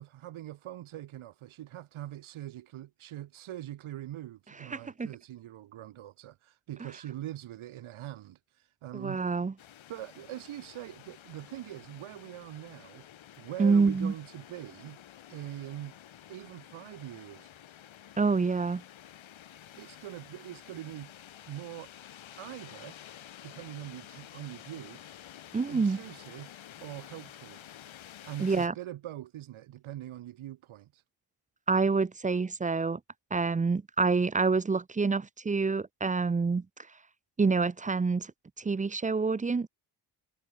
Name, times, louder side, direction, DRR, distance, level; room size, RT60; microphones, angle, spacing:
voice 1, 0.0-9.2 9.9-13.1 13.4-15.0 15.3-15.9 16.3-17.5 19.8-21.1 21.5-21.9 22.4-23.0 23.4-25.0 25.7-27.6 28.2-31.0, right 13 dB, 80° right, 1.1 m, -43 dB
voice 2, 4.7-5.1 8.9-9.5 13.6-14.1 18.2-18.8 25.5-26.0 28.4-28.7 31.7-33.0 33.3-36.6 37.4-38.3 38.6-39.7, right 4 dB, 15° right, 0.5 m, -27 dB
sound 1, 9.6-28.7, left 11 dB, 70° left, 1.5 m, -51 dB
cardioid pair, 60°, 48 cm